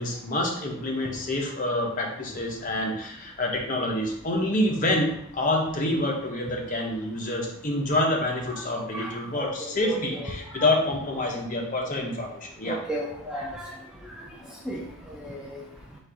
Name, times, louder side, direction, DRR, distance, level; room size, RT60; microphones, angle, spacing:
voice 1, 0.0-12.8, left 1 dB, 35° left, 0 dB, 0.8 m, -27 dB
voice 2, 8.9-10.7 12.7-13.7 14.7-14.8 15.1-15.6, right 1 dB, 5° right, -3 dB, 0.4 m, -35 dB
4.2 x 2.5 x 4.7 m, 0.72 s
head